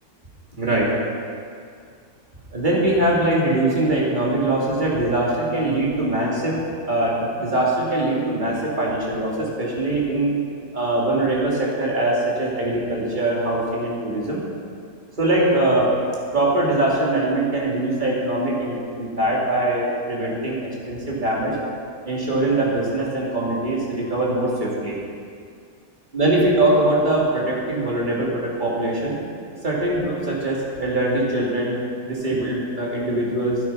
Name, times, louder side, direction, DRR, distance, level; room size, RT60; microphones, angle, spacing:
voice 1, 0.5-0.9 2.5-6.6 6.9-10.3 10.7-14.4 15.2-15.9 16.3-21.6 22.1-25.0 26.1-29.2 29.6-31.8 32.1-33.6, right 1 dB, 30° right, -5 dB, 2.8 m, -22 dB
12.5 x 8.6 x 5.7 m, 2.2 s
omnidirectional pair, 1.6 m